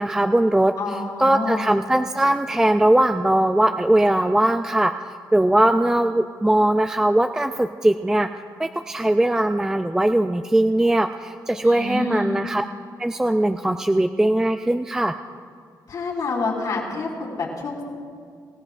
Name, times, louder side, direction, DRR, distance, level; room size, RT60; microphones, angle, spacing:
voice 1, 0.0-0.7 1.2-4.9 5.3-8.3 8.6-12.6 13.0-15.1, right 1 dB, 10° right, 7 dB, 0.3 m, -20 dB
voice 2, 0.8-1.8 11.6-12.4 15.9-17.8, left 3 dB, 65° left, -5 dB, 3.5 m, -28 dB
25.5 x 16.5 x 2.5 m, 2.1 s
wide cardioid pair, 160°, 7 cm